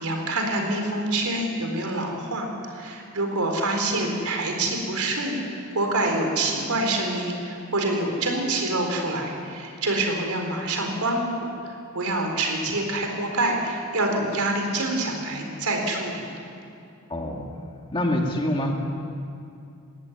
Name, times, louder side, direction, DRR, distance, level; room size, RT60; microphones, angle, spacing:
voice 1, 0.0-11.3 11.6-16.3, right 2 dB, 85° right, 2 dB, 4.2 m, -26 dB
voice 2, 17.1-17.4 17.9-18.8, left 1 dB, 25° left, 1 dB, 2.2 m, -25 dB
20.5 x 16.0 x 9.9 m, 2.5 s
head